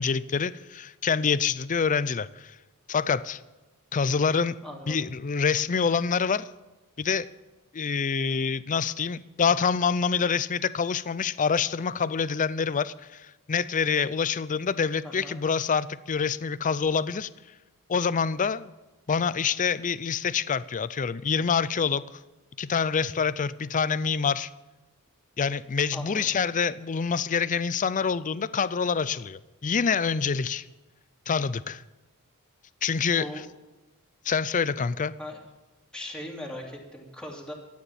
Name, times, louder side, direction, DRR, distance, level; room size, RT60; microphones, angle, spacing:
voice 1, 0.0-2.6 2.9-3.4 3.9-4.6 4.9-6.5 7.0-7.3 7.7-17.3 17.9-18.7 19.1-22.0 22.6-24.5 25.4-30.6 31.3-31.8 32.8-33.3 34.3-35.1, left 6 dB, 35° left, 0.5 m, -26 dB
voice 2, 4.6-5.1 15.0-15.4 25.9-26.4 33.2-33.5 35.2-35.4 35.9-37.5, left 1 dB, 5° left, 2.9 m, -39 dB
14.0 x 9.5 x 8.9 m
head